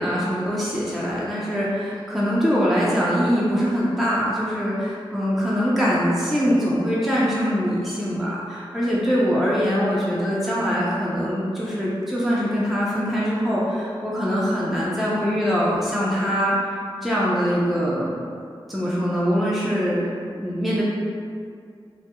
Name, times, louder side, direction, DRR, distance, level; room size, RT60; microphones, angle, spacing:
voice 1, 0.0-16.6 17.0-18.2 18.7-20.0 20.3-20.8, equal, ahead, -7 dB, 0.4 m, -23 dB
2.2 x 2.0 x 2.8 m, 2.3 s
wide cardioid pair, 75°, 9 cm